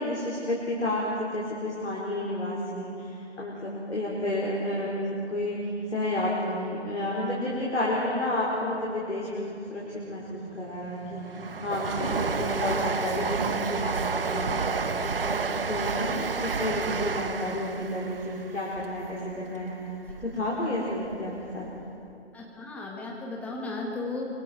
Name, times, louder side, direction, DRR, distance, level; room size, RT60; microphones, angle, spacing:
voice 1, 0.0-11.2 11.6-19.7 20.2-21.6, left 1 dB, 70° left, -4 dB, 4.9 m, -31 dB
Train, 10.3-20.5 20.9-21.8 22.1-22.2, right 5 dB, 50° right, 1.1 m, -31 dB
voice 2, 22.3-24.3, left 3 dB, 5° left, -2 dB, 1.6 m, -36 dB
27.0 x 25.5 x 4.6 m, 2.8 s
figure-of-eight pair, 145°, 35 cm